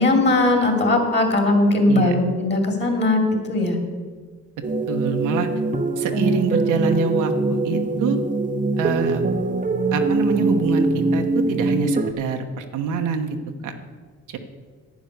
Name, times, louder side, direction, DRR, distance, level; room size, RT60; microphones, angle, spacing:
voice 1, 0.0-3.8, left 2 dB, 35° left, 3 dB, 2.7 m, -19 dB
sound 1, 4.6-12.1, right 2 dB, 25° right, 0.8 m, -22 dB
voice 2, 4.9-5.5 6.0-8.2 8.8-9.2 9.9-13.4 13.6-13.7 14.3-14.4, right 5 dB, 85° right, 5 dB, 1.2 m, -25 dB
10.5 x 9.1 x 6.7 m, 1.5 s
cardioid pair, 90°, 30 cm